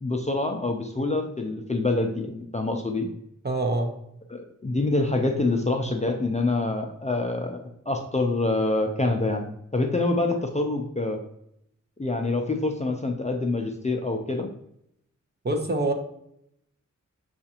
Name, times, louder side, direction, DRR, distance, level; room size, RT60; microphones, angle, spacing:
voice 1, 0.0-3.1 4.3-11.2 12.0-14.5, left 2 dB, 20° left, 3 dB, 0.4 m, -26 dB
voice 2, 3.4-3.9 15.4-15.9, right 2 dB, 30° right, 4 dB, 0.7 m, -25 dB
6.5 x 2.5 x 2.8 m, 0.75 s
wide cardioid pair, 75°, 31 cm